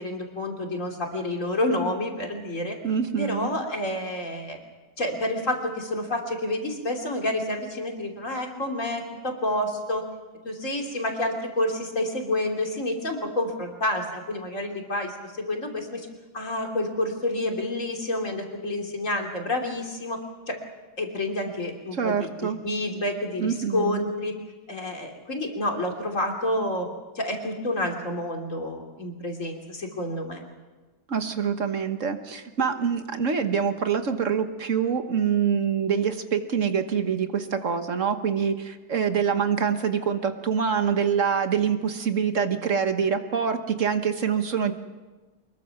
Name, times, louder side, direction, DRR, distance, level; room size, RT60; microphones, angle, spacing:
voice 1, 0.0-2.8 3.2-4.6 5.0-10.0 10.4-16.1 16.3-20.2 20.5-20.6 21.0-24.3 24.7-26.9 27.1-30.4, left 1 dB, 55° left, 2 dB, 3.2 m, -29 dB
voice 2, 2.8-3.5 21.9-22.6 23.4-24.0 31.1-44.7, right 7 dB, 55° right, 8 dB, 1.5 m, -25 dB
24.0 x 22.0 x 5.9 m, 1.2 s
omnidirectional pair, 1.7 m